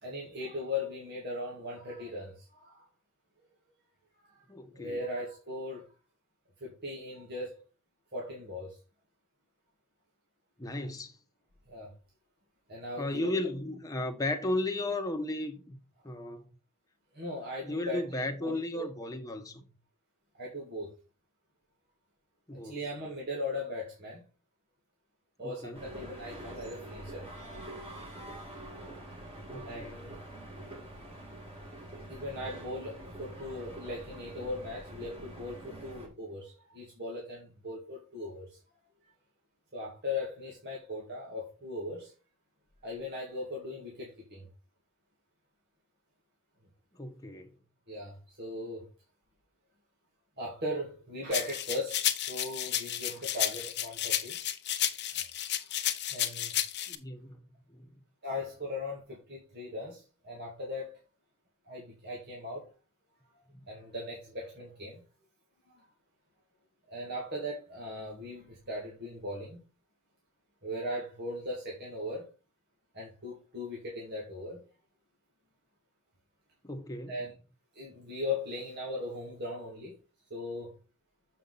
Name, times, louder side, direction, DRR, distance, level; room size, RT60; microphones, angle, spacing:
voice 1, 0.0-2.8 4.2-5.9 6.6-7.6 8.1-8.8 11.7-11.9 12.7-13.3 17.1-18.9 20.3-20.9 22.5-24.2 25.4-27.3 29.6-30.2 32.1-38.5 39.7-42.1 42.8-44.5 47.9-48.9 50.4-54.4 55.2-55.3 56.1-56.5 58.2-60.9 61.7-62.7 63.3-65.0 65.8-65.9 66.9-69.6 70.6-72.3 72.9-74.6 77.1-77.3 77.8-80.0 80.3-80.7, left 1 dB, 50° right, 2.4 m, -39 dB
voice 2, 4.5-5.0 10.6-11.2 13.0-15.8 16.0-16.5 17.6-19.7 22.5-22.8 25.4-25.8 29.5-30.0 46.9-47.5 56.9-57.9 76.6-77.2, left 2 dB, 15° left, 1.2 m, -35 dB
sound 1, 25.7-36.1, right 1 dB, 30° right, 2.9 m, -45 dB
sound 2, 51.3-56.9, left 12 dB, 55° left, 0.8 m, -32 dB
7.3 x 5.5 x 4.1 m
head